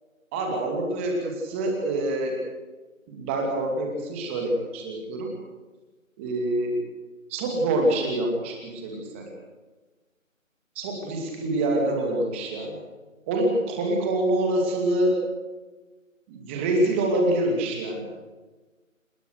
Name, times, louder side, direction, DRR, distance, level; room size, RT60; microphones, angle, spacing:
voice 1, 0.3-2.4 3.1-5.3 6.2-6.8 7.3-9.3 10.7-12.8 13.3-15.2 16.3-18.1, right 1 dB, 10° right, 1 dB, 2.6 m, -26 dB
29.0 x 17.0 x 6.6 m, 1.2 s
figure-of-eight pair, 170°, 40 cm